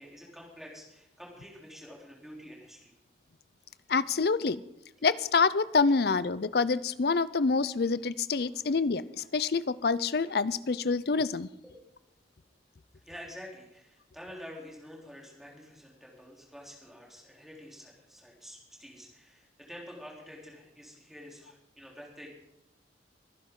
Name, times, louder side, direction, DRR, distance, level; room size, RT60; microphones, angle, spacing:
voice 1, 0.0-2.9 11.6-11.9 13.0-22.3, equal, ahead, -3 dB, 3.4 m, -48 dB
voice 2, 3.9-4.6 5.0-11.5, left 4 dB, 55° left, 17 dB, 0.5 m, -27 dB
23.5 x 10.5 x 3.8 m, 0.84 s
head